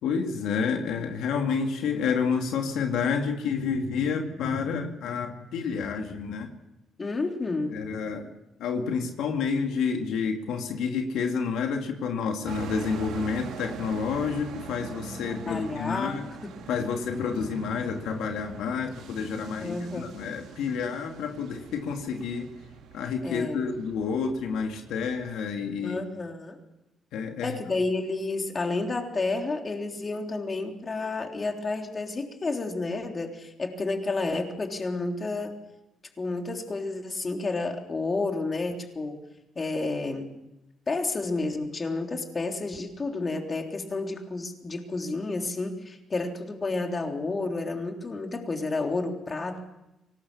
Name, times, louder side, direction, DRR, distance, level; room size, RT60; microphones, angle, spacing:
voice 1, 0.0-6.5 7.7-8.3 8.6-16.3 16.7-22.5 22.9-26.0 27.1-27.6, left 5 dB, 85° left, 4 dB, 2.4 m, -29 dB
voice 2, 7.0-7.8 15.5-16.5 19.6-20.1 23.2-23.7 25.8-26.6 27.4-35.6 36.2-39.2 39.6-40.3 40.9-49.6, left 3 dB, 30° left, 3 dB, 3.5 m, -30 dB
sound 1, 12.4-25.3, right 7 dB, 85° right, 3.2 m, -43 dB
24.0 x 19.0 x 7.2 m, 0.92 s
cardioid pair, 90°, 0 cm